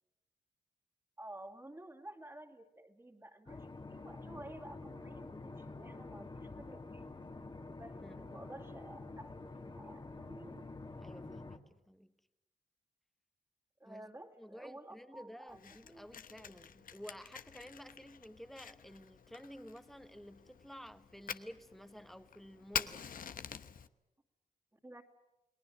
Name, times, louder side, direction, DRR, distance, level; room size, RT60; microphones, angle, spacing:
voice 1, 1.2-7.4 7.8-10.7 13.8-16.1 24.8-25.0, right 1 dB, 20° right, 2.6 m, -52 dB
sound 1, 3.5-11.6, left 3 dB, 30° left, 2.1 m, -48 dB
voice 2, 11.0-12.1 13.8-14.1 14.4-23.1, equal, ahead, 1.4 m, -52 dB
Fire, 15.5-23.9, left 7 dB, 70° left, 1.0 m, -46 dB
29.5 x 19.0 x 7.6 m
cardioid pair, 65°, 15 cm